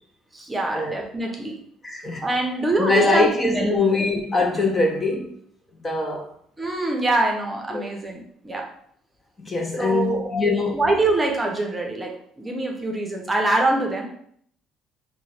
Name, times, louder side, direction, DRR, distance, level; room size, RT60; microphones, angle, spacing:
voice 1, 0.3-1.6 2.2-3.3 3.5-4.0 6.6-8.7 9.8-10.3 10.7-14.1, right 2 dB, 15° right, 0.7 m, -24 dB
voice 2, 1.8-2.2 2.7-5.4 5.8-6.3 7.7-7.9 9.4-10.8, left 3 dB, 25° left, 0.6 m, -22 dB
3.0 x 2.2 x 4.2 m
cardioid pair, 100°, 0 cm